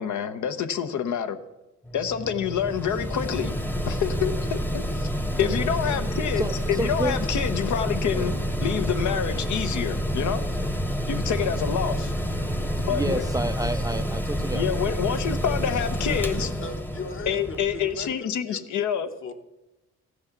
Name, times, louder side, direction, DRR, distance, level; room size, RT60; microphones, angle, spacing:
voice 1, 0.0-1.4 1.9-3.6 3.9-5.1 5.4-6.4 6.8-8.3 8.6-10.4 11.1-12.1 12.8-13.2 14.5-16.5 17.3-19.1, left 8 dB, 75° left, 0.9 m, -27 dB
Mechanical fan, 1.8-18.1, equal, 5° left, 0.9 m, -28 dB
voice 2, 6.4-7.2 8.1-8.4 12.9-15.1 15.5-15.7, right 2 dB, 10° right, 0.4 m, -31 dB
voice 3, 16.1-18.8 19.2-19.3, left 4 dB, 45° left, 1.1 m, -38 dB
14.5 x 6.3 x 6.0 m
cardioid pair, 90°, 30 cm